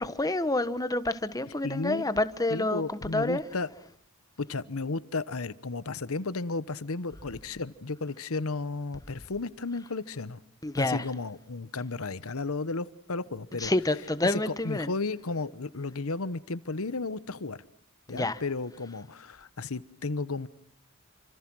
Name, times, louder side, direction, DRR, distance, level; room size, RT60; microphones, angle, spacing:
voice 1, 0.0-3.4 10.6-11.0 13.6-14.9 18.1-18.4, left 2 dB, 15° left, 1.3 m, -28 dB
voice 2, 1.6-2.1 2.5-3.7 4.4-10.4 10.8-13.7 14.2-17.6 18.1-20.5, left 3 dB, 70° left, 1.0 m, -33 dB
29.0 x 25.5 x 6.2 m
head